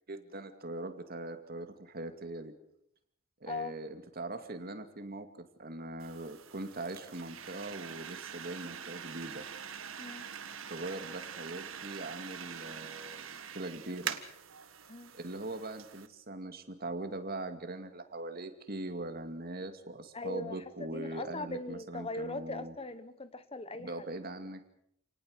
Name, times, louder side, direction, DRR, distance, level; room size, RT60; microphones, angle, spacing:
voice 1, 0.1-2.5 3.4-5.3 5.6-9.5 10.7-14.2 15.1-22.7 23.8-24.6, right 2 dB, 50° right, 8 dB, 2.3 m, -41 dB
voice 2, 3.5-3.8 10.0-10.3 14.9-15.1 20.1-24.0, left 2 dB, 30° left, 13 dB, 1.2 m, -40 dB
sound 1, 6.0-16.1, right 8 dB, 90° right, 1.7 m, -44 dB
29.0 x 18.5 x 6.5 m, 0.72 s
head